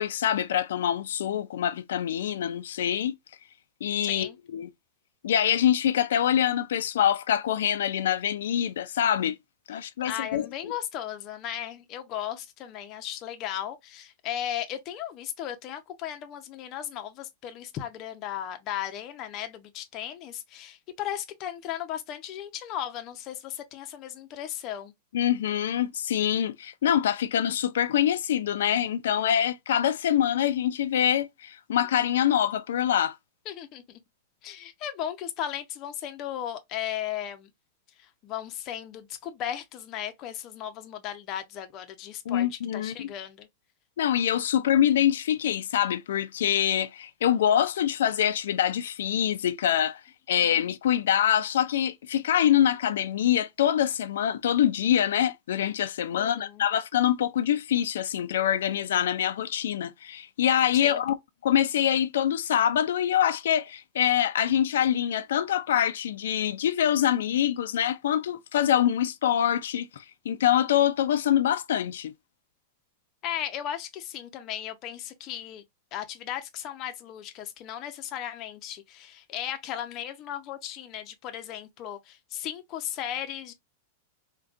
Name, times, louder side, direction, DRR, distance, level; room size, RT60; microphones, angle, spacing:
voice 1, 0.0-3.1 3.8-4.7 5.2-9.4 9.7-10.7 25.1-33.2 42.3-43.1 44.0-50.0 50.3-61.1 61.4-72.1, left 10 dB, 85° left, 0.3 m, -25 dB
voice 2, 10.0-24.9 33.5-34.0 34.4-37.5 38.2-43.5 50.4-50.6 56.1-56.6 60.7-61.0 73.2-75.6 75.9-83.5, left 10 dB, 30° left, 0.5 m, -36 dB
3.6 x 2.2 x 2.4 m
supercardioid pair, 160°, 0 cm